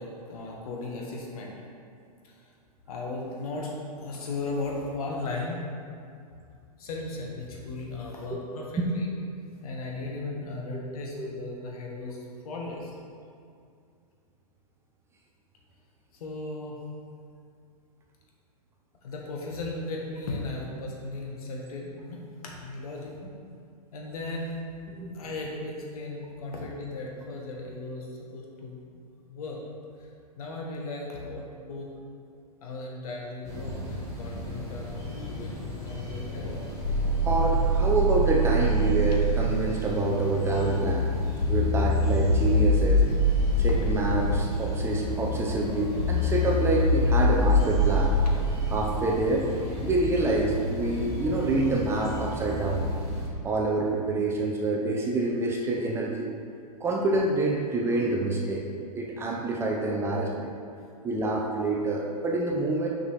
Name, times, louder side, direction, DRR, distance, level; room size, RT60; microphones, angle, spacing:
voice 1, 0.0-1.5 2.2-2.5 2.9-5.6 6.8-9.1 9.6-12.2 12.4-12.9 16.1-16.8 19.0-23.1 23.9-24.6 25.1-28.1 28.3-28.8 29.3-29.6 30.4-31.9 32.6-36.6, left 2 dB, 65° left, -1 dB, 1.4 m, -36 dB
voice 2, 8.3-8.9 10.7-10.8 11.2-11.3 25.0-25.1 37.2-41.0 41.5-43.0 43.6-48.1 48.7-49.5 49.8-52.9 53.4-56.3 56.8-58.7 59.0-60.5 61.0-62.9, right 2 dB, 15° right, -1 dB, 0.5 m, -27 dB
sound 1, 33.4-53.3, left 2 dB, 15° left, 1.6 m, -33 dB
sound 2, 36.4-39.7 41.4-50.5, equal, 90° left, 0.9 m, -25 dB
6.4 x 5.4 x 3.2 m, 2.4 s
hypercardioid pair, 135°, 20 cm